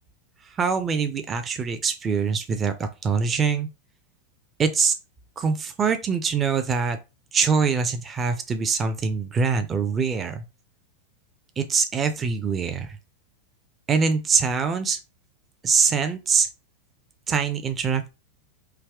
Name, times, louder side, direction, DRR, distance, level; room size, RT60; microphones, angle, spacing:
voice 1, 0.5-3.7 4.6-4.9 5.4-7.0 7.3-10.4 11.6-13.0 13.9-15.0 15.6-16.5 17.3-18.1, right 5 dB, 20° right, 0.7 m, -24 dB
4.7 x 2.9 x 3.5 m
figure-of-eight pair, 90°, 0 cm